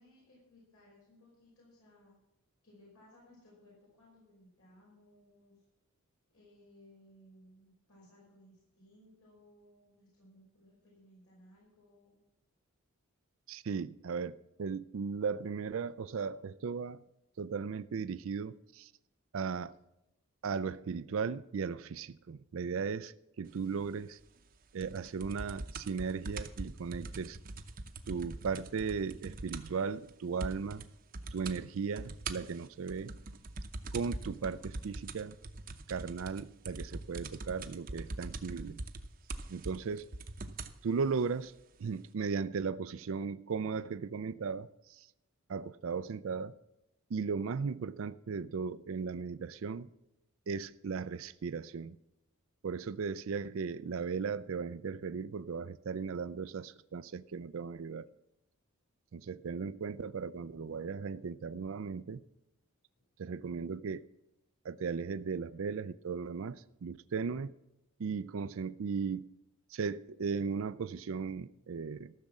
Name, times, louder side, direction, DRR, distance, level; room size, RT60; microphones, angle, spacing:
voice 1, 0.0-2.2 2.6-5.6 6.3-12.2 65.5-65.7, left 1 dB, 80° left, 5.3 m, -61 dB
voice 2, 13.5-14.3 14.6-17.0 17.4-18.9 19.3-19.7 20.4-24.2 24.7-27.4 28.1-30.8 31.3-33.1 33.9-35.4 35.9-38.8 39.5-40.1 40.8-41.5 41.8-45.1 45.5-46.5 47.1-49.9 50.5-52.0 52.6-58.1 59.1-62.2 63.2-64.0 64.6-67.5 68.0-69.2 69.7-72.1, right 5 dB, 65° right, 0.4 m, -36 dB
sound 1, 24.8-29.8 30.1-30.2 30.4-30.9 31.1-31.6 32.0-40.8 41.6-41.7, right 2 dB, 40° right, 0.7 m, -42 dB
14.0 x 6.6 x 7.3 m
head